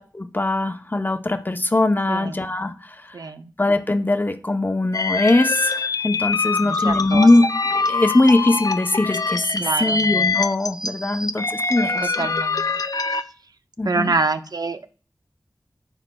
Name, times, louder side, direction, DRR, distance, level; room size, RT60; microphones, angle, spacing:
voice 1, 0.0-3.2 3.6-12.3 13.8-14.1, left 2 dB, 30° left, 7 dB, 0.7 m, -21 dB
voice 2, 2.1-2.5 3.1-3.5 6.6-7.3 9.6-10.0 12.0-12.6 13.8-14.9, right 3 dB, 75° right, 9 dB, 0.6 m, -26 dB
sound 1, 4.9-13.2, left 4 dB, 65° left, 0.5 m, -24 dB
13.5 x 5.0 x 2.3 m, 0.39 s
wide cardioid pair, 70°, 7 cm